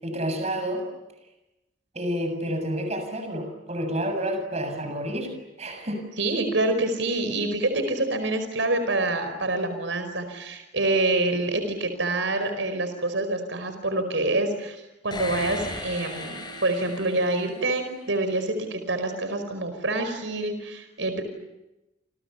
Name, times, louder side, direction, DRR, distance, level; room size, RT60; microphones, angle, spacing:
voice 1, 0.0-0.8 1.9-5.3 5.6-6.0, equal, 35° right, 6 dB, 7.3 m, -29 dB
voice 2, 6.2-21.2, right 2 dB, 80° right, 8 dB, 4.9 m, -26 dB
sound 1, 15.1-17.9, left 2 dB, 25° left, 6.3 m, -36 dB
29.5 x 29.0 x 7.0 m, 0.97 s
head